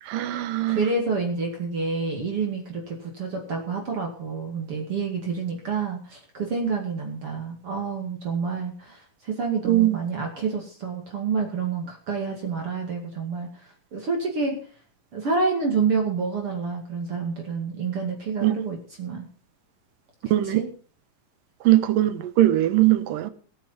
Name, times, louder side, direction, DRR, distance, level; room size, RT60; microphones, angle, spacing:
voice 1, 0.0-0.9 9.6-10.0 18.4-18.6 20.3-20.6 21.6-23.3, right 14 dB, 85° right, 2.7 m, -21 dB
voice 2, 0.7-14.6 15.1-19.3 20.5-20.7, right 4 dB, 45° right, 3.0 m, -28 dB
18.5 x 9.0 x 5.7 m
omnidirectional pair, 3.9 m